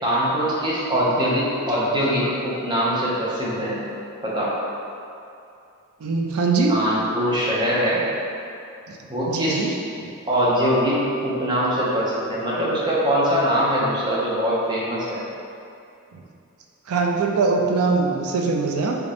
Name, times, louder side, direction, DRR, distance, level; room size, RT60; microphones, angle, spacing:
voice 1, 0.0-3.8 4.2-4.5 6.7-8.1 9.1-9.7 10.2-15.2, equal, 20° right, -7 dB, 0.7 m, -22 dB
voice 2, 6.0-6.8 8.9-9.0 9.3-9.7 10.0-10.1 16.1-16.2 16.9-19.0, right 4 dB, 75° right, 1 dB, 0.4 m, -22 dB
3.4 x 2.6 x 3.3 m, 2.6 s
head